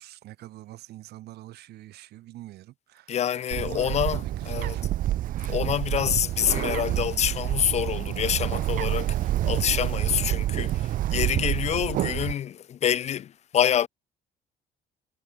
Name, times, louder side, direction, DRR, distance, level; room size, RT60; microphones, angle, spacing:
voice 1, 0.0-4.8 10.0-10.1, right 15 dB, 75° right, 1.8 m, -45 dB
voice 2, 3.1-4.8 5.5-13.9, left 10 dB, 40° left, 0.4 m, -27 dB
Bird, 3.5-12.3, right 13 dB, 55° right, 0.4 m, -28 dB
cardioid pair, 110°, 17 cm